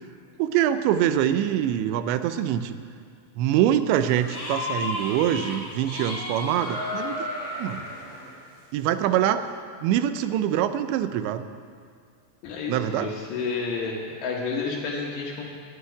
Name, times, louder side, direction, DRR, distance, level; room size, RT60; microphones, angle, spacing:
voice 1, 0.4-2.7 3.4-7.2 7.6-7.8 8.7-9.5 9.8-11.4 12.7-13.1, right 11 dB, 85° right, 11 dB, 2.9 m, -24 dB
sound 1, 3.9-5.6 5.8-8.3, left 2 dB, 20° left, 2.5 m, -33 dB
voice 2, 12.4-15.5, left 4 dB, 75° left, -2 dB, 3.7 m, -30 dB
12.5 x 9.8 x 9.4 m, 2.1 s
omnidirectional pair, 5.0 m